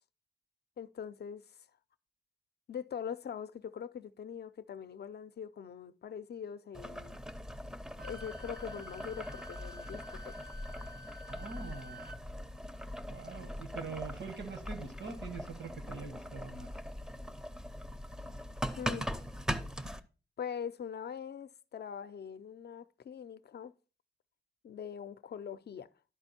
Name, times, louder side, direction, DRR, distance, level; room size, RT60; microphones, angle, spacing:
voice 1, 0.8-1.6 2.7-7.2 8.0-10.5 18.8-19.1 20.4-23.7 24.6-25.9, left 7 dB, 60° left, 0.5 m, -42 dB
Boiling, 6.7-20.0, equal, 5° right, 0.5 m, -41 dB
Wind instrument woodwind instrument, 8.0-12.2, left 1 dB, 55° right, 0.7 m, -51 dB
voice 2, 11.3-12.0 13.1-16.7, right 4 dB, 80° right, 1.5 m, -44 dB
11.0 x 4.4 x 4.2 m
wide cardioid pair, 125°, 19 cm